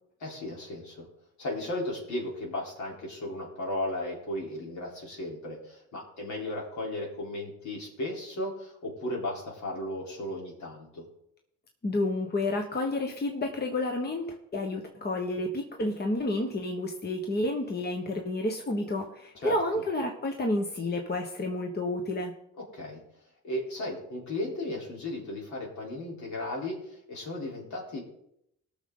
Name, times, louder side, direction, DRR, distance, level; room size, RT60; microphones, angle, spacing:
voice 1, 0.2-1.1 1.4-11.1 19.3-19.8 22.6-23.0 23.4-28.0, left 1 dB, 70° left, -2 dB, 3.9 m, -35 dB
voice 2, 11.8-22.3, left 2 dB, 35° left, 3 dB, 1.3 m, -30 dB
19.0 x 6.6 x 3.9 m, 0.76 s
cardioid pair, 90°, 30 cm